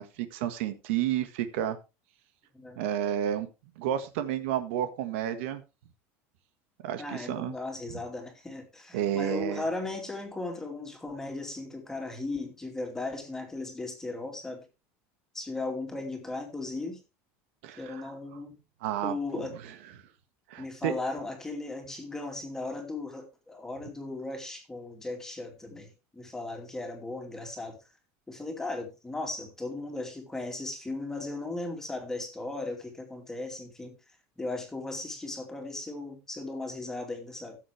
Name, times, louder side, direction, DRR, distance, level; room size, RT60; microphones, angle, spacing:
voice 1, 0.0-1.8 2.8-3.5 3.8-5.6 6.8-7.5 8.9-9.6 17.6-18.0 18.8-19.5 20.5-20.9, right 11 dB, 80° right, 9 dB, 1.7 m, -31 dB
voice 2, 7.0-14.6 15.3-17.0 17.8-18.6 19.0-19.6 20.6-27.8 28.3-37.6, left 2 dB, 5° left, 3 dB, 2.5 m, -37 dB
15.0 x 7.5 x 3.4 m, 0.27 s
cardioid pair, 165°, 7 cm